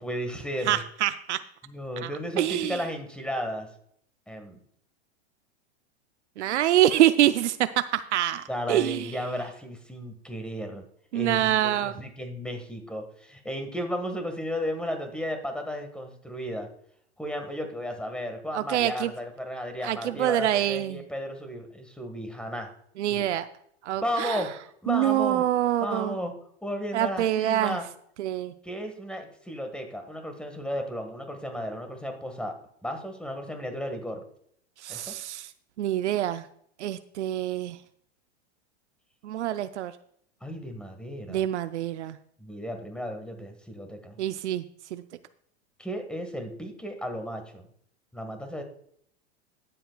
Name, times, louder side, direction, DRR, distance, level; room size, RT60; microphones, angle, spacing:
voice 1, 0.0-0.8 1.6-3.7 4.3-4.6 8.5-10.9 11.1-16.7 17.2-22.7 23.1-23.4 24.0-24.6 24.8-25.4 25.8-26.3 26.6-27.9 28.6-32.5 32.8-34.2 34.9-35.1 40.4-41.5 42.4-44.2 45.8-47.6 48.1-48.6, equal, 5° left, 5 dB, 1.6 m, -34 dB
voice 2, 0.7-1.4 2.0-2.1 2.4-2.8 6.4-9.1 11.1-11.9 18.5-19.1 19.8-21.0 23.0-23.4 23.8-24.4 24.9-26.2 26.9-27.8 28.2-28.5 34.8-35.5 35.8-36.5 36.8-37.8 39.2-39.9 41.3-42.2 44.2-44.6 44.9-45.0, right 12 dB, 85° right, 11 dB, 0.6 m, -25 dB
18.0 x 7.7 x 2.3 m, 0.67 s
hypercardioid pair, 110°, 34 cm